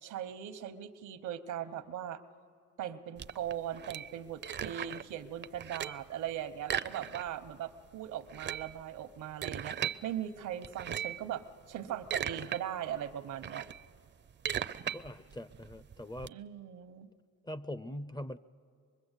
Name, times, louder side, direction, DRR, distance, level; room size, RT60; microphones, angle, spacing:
voice 1, 0.0-2.2 2.8-13.7 16.3-17.1, right 10 dB, 80° right, 11 dB, 1.0 m, -39 dB
sound 1, 3.2-5.1 5.4-6.1 6.6-7.5 7.8-7.9 8.2-10.0 10.6-11.3 11.8-12.6 13.0-16.3, right 9 dB, 35° right, 0.5 m, -38 dB
voice 2, 14.9-16.4 17.4-18.4, left 1 dB, 15° left, 16 dB, 0.5 m, -42 dB
24.5 x 22.0 x 8.2 m, 2.2 s
cardioid pair, 90°, 30 cm